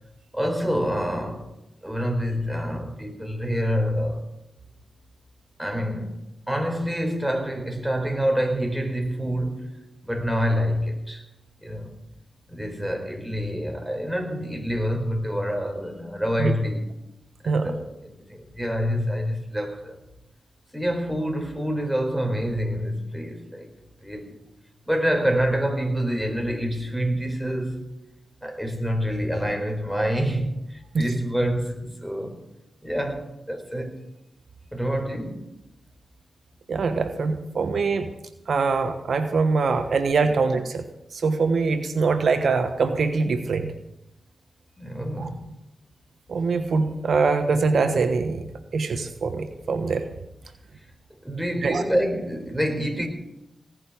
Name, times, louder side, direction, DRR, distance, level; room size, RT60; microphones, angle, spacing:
voice 1, 0.3-1.5 1.8-4.2 5.6-6.1 6.5-11.2 11.6-11.9 12.5-16.8 17.4-17.9 18.1-20.0 20.7-23.7 24.0-24.4 24.9-28.0 28.4-32.4 32.8-34.0 34.7-35.4 40.2-40.3 44.8-45.5 51.2-53.1, equal, 5° right, 4.5 m, -27 dB
voice 2, 36.7-38.1 38.5-40.8 41.1-43.7 45.2-45.3 46.3-48.4 48.7-50.1 51.6-51.8, right 4 dB, 70° right, 1.1 m, -23 dB
18.5 x 6.5 x 9.3 m
supercardioid pair, 40°, 0 cm